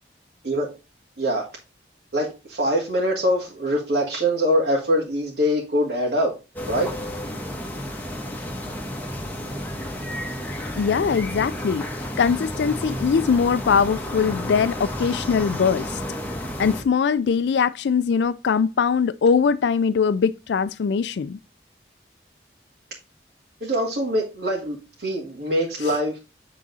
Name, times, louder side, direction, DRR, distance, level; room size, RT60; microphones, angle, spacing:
voice 1, 2.1-6.3 6.7-7.0 23.6-26.2, equal, 65° right, 2.1 m, -23 dB
sound 1, 6.6-16.8, left 1 dB, 10° left, 1.2 m, -31 dB
voice 2, 10.8-11.8 12.2-16.0 16.6-21.4 25.8-25.9, left 6 dB, 80° left, 0.4 m, -21 dB
8.6 x 3.9 x 4.0 m
head